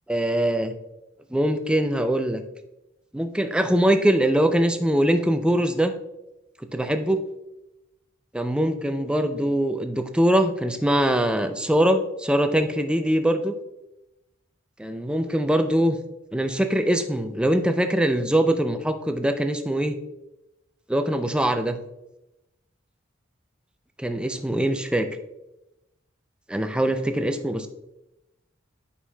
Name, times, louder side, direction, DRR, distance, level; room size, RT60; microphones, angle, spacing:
voice 1, 0.1-0.7 1.3-2.4 3.1-5.9 6.7-7.2 8.3-13.5 14.8-16.0 16.3-20.0 20.9-21.8 24.0-25.1 26.5-27.7, right 1 dB, 5° right, 7 dB, 0.3 m, -22 dB
8.6 x 5.5 x 2.2 m, 0.91 s
head